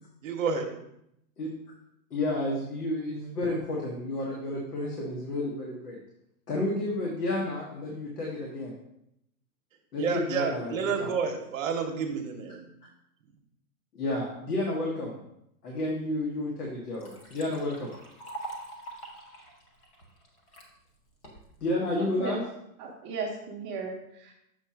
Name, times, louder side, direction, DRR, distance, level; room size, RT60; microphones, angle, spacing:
voice 1, 0.2-0.7 10.0-12.7, right 6 dB, 60° right, 3 dB, 0.9 m, -30 dB
voice 2, 2.1-6.0 6.5-8.7 9.9-10.7 11.0-11.1 13.9-15.1 15.6-17.9 21.6-22.4, left 1 dB, 85° left, -2 dB, 1.7 m, -31 dB
Liquid, 16.2-16.3 16.7-20.7 21.2-21.7, right 2 dB, 20° left, 0.8 m, -44 dB
voice 3, 22.0-22.4 22.8-24.3, right 4 dB, 20° right, -1 dB, 0.7 m, -36 dB
7.0 x 2.9 x 5.8 m, 0.80 s
hypercardioid pair, 160°, 46 cm